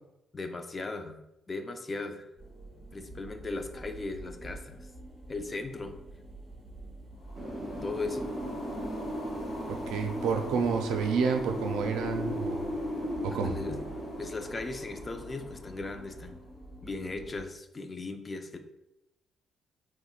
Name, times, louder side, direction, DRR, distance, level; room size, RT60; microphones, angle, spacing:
voice 1, 0.3-1.2 1.5-2.3 2.9-4.9 5.3-6.0 7.8-8.3 13.3-13.8 14.2-16.4 16.8-18.6, left 3 dB, 30° left, 7 dB, 0.4 m, -37 dB
sound 1, 2.4-17.4, right 1 dB, 5° right, 0.9 m, -48 dB
sound 2, 7.2-16.6, left 1 dB, 60° left, 1.0 m, -47 dB
Wind, 7.4-16.1, equal, 35° right, 0.9 m, -37 dB
voice 2, 9.7-12.7 13.2-13.6, right 5 dB, 90° right, 4 dB, 0.4 m, -29 dB
3.5 x 3.0 x 2.3 m, 0.89 s
cardioid pair, 90°, 0 cm